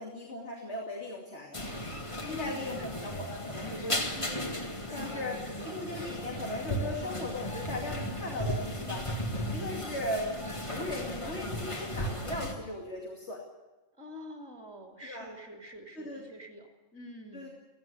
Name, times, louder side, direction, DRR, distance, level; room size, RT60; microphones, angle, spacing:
voice 1, 0.0-1.7 2.2-4.3 4.9-9.1 9.5-10.4 10.7-13.4 15.0-15.3 16.0-16.2 17.3-17.5, left 1 dB, 60° left, -1 dB, 3.0 m, -38 dB
sound 1, 1.5-12.5, equal, 25° left, 2.0 m, -35 dB
voice 2, 2.2-2.9 4.9-5.6 14.0-17.5, left 2 dB, 5° right, 1 dB, 2.5 m, -46 dB
16.5 x 16.0 x 10.0 m, 1.1 s
omnidirectional pair, 1.3 m